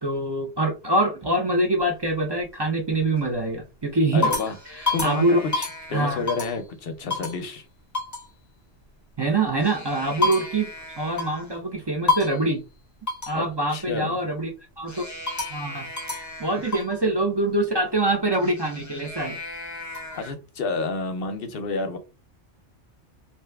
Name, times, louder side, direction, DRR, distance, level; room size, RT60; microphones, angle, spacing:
voice 1, 0.0-4.3 4.7-5.4 5.9-6.2 9.2-12.6 13.3-14.5 14.8-15.1 15.5-19.4, right 2 dB, 40° right, 0.3 m, -24 dB
sound 1, 1.8-2.5 3.0-3.4 3.9-6.7 7.1-7.4 7.9-8.3 9.4-11.6 12.1-12.5 13.1-13.4 14.9-17.0 18.3-20.3, left 3 dB, 20° left, 0.5 m, -30 dB
voice 2, 4.1-4.6 4.9-7.7 13.3-14.2 20.1-22.0, left 3 dB, 60° left, 0.7 m, -29 dB
2.8 x 2.2 x 3.3 m
omnidirectional pair, 1.3 m